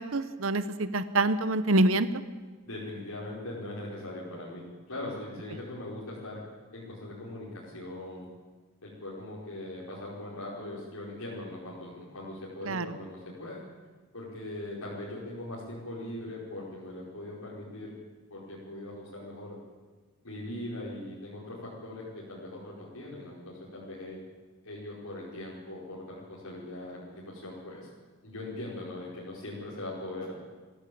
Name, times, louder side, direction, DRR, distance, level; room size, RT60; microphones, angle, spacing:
voice 1, 0.0-2.1 12.6-12.9, right 2 dB, 65° right, 12 dB, 0.9 m, -26 dB
voice 2, 2.6-6.4 6.7-8.3 8.8-13.6 14.1-17.9 18.3-19.6 20.2-24.2 24.6-27.9 28.2-30.4, left 1 dB, 85° left, -6 dB, 5.1 m, -40 dB
23.0 x 15.5 x 8.6 m, 1.4 s
head